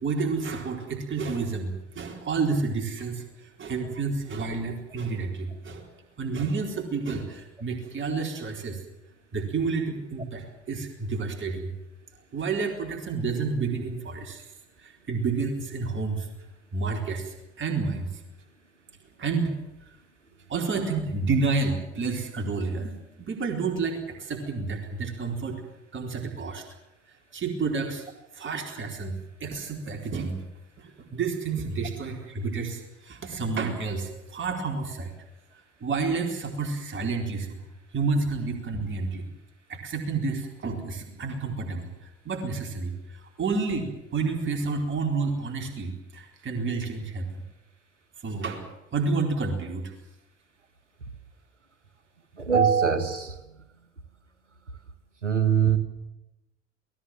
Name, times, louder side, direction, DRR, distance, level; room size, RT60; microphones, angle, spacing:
voice 1, 0.0-5.9 6.2-8.8 9.3-11.7 12.3-14.5 14.8-16.3 16.7-18.1 19.2-19.5 20.5-25.6 25.9-26.6 27.3-28.1 28.3-30.3 30.8-35.1 35.8-37.6 37.9-39.3 39.7-41.9 42.2-47.4 48.2-48.6 48.9-49.9, right 4 dB, 35° right, 2 dB, 4.2 m, -30 dB
voice 2, 52.4-53.4 55.2-55.8, right 7 dB, 85° right, 10 dB, 1.8 m, -22 dB
27.5 x 18.5 x 7.5 m, 0.93 s
figure-of-eight pair, 60°, 35 cm